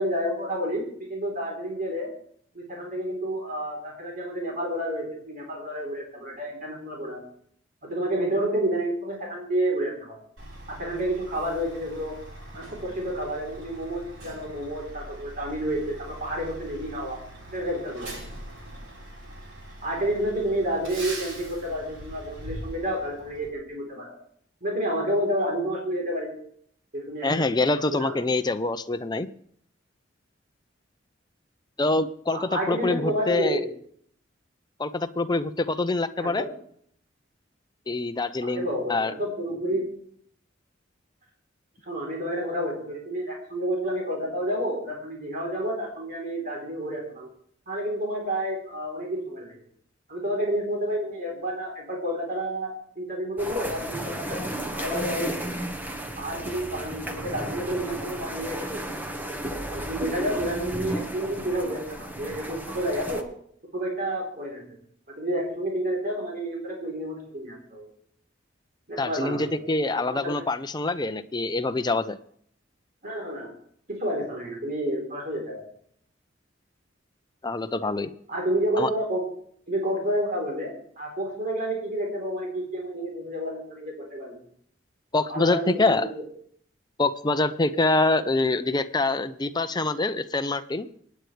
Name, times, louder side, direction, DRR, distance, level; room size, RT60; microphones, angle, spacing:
voice 1, 0.0-2.1 2.5-7.2 7.8-10.2 10.7-12.2 12.5-17.2 17.5-18.2 19.8-24.1 24.6-26.3 26.9-27.4 27.7-28.2 32.3-33.7 36.2-36.5 38.4-39.9 41.8-47.3 47.7-49.6 50.1-52.7 53.0-54.4 54.7-55.6 56.2-59.1 59.7-63.3 63.7-64.8 65.1-67.9 68.9-69.6 69.9-70.4 73.0-73.5 73.9-75.6 78.3-79.3 79.7-80.7 81.0-84.4 85.3-86.1, right 1 dB, 45° right, -1 dB, 3.8 m, -30 dB
Truck, 10.4-23.5, right 1 dB, 80° right, 4.6 m, -42 dB
voice 2, 27.2-29.3 31.8-33.6 34.8-36.4 37.9-39.1 69.0-72.2 77.4-78.1 78.8-78.9 85.1-86.1 87.0-90.9, left 2 dB, 20° left, 10 dB, 0.6 m, -25 dB
sound 1, 53.4-63.2, right 1 dB, 10° right, 1.1 m, -34 dB
26.0 x 9.3 x 3.4 m, 0.64 s
head